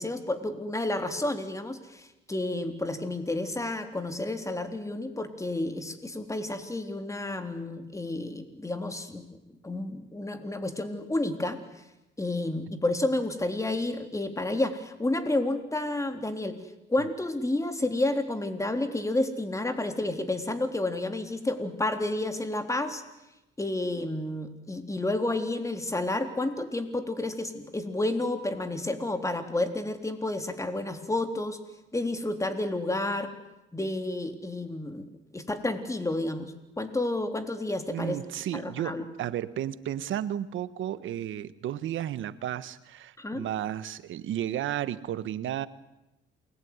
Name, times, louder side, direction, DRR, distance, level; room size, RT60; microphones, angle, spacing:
voice 1, 0.0-9.3 9.6-11.6 12.2-16.6 16.9-23.0 23.6-31.6 31.9-33.3 33.7-38.2 38.5-39.0 43.2-43.5, left 2 dB, 15° left, 7 dB, 3.6 m, -30 dB
voice 2, 37.9-45.7, right 11 dB, 75° right, 14 dB, 1.4 m, -33 dB
28.5 x 21.0 x 9.7 m, 0.95 s
cardioid pair, 90°, 20 cm